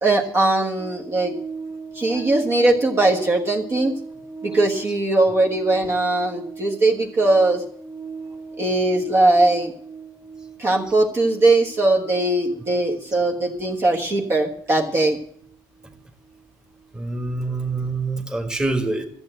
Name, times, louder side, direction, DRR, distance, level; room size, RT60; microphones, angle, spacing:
voice 1, 0.0-1.3 1.9-3.9 4.4-7.6 8.6-9.7 10.6-15.2, right 2 dB, 30° right, 1 dB, 1.4 m, -20 dB
sound 1, 0.8-17.3 17.6-17.8, right 5 dB, 50° right, 2.8 m, -39 dB
voice 2, 16.9-19.1, right 3 dB, 10° right, 3 dB, 1.6 m, -25 dB
13.5 x 7.8 x 7.7 m, 0.64 s
cardioid pair, 135°, 8 cm